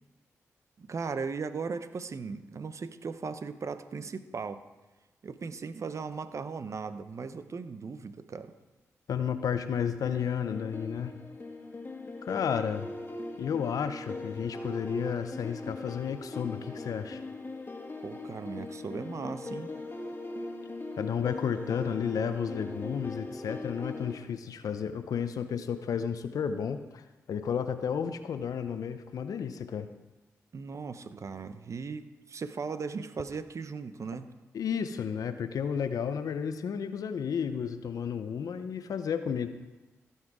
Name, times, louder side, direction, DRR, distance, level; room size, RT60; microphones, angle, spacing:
voice 1, 0.8-4.6 5.2-8.5 18.0-19.7 30.5-34.3, right 5 dB, 55° right, 12 dB, 0.7 m, -37 dB
voice 2, 9.1-11.1 12.3-12.9 13.3-17.2 21.0-29.9 34.5-39.5, left 7 dB, 75° left, 10 dB, 0.7 m, -32 dB
sound 1, 10.1-24.2, left 2 dB, 35° left, 1.7 m, -40 dB
15.5 x 5.6 x 4.8 m, 1.1 s
supercardioid pair, 40°, 6 cm